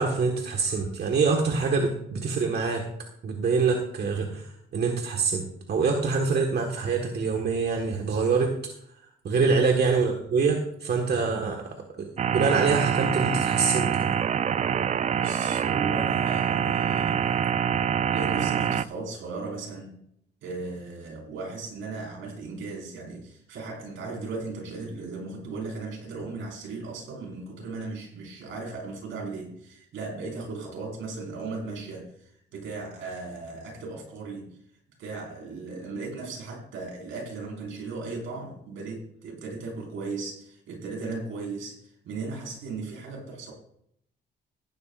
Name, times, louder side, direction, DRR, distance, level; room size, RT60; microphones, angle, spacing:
voice 1, 0.0-2.9 3.2-8.5 9.2-14.1, right 4 dB, 55° right, 2 dB, 1.6 m, -25 dB
sound 1, 12.2-18.8, right 8 dB, 35° right, 0.4 m, -25 dB
voice 2, 15.1-17.3 18.1-20.0 20.4-34.6 35.0-43.5, right 3 dB, 80° right, -1 dB, 5.2 m, -36 dB
15.5 x 11.5 x 2.5 m, 0.70 s
cardioid pair, 90°, 20 cm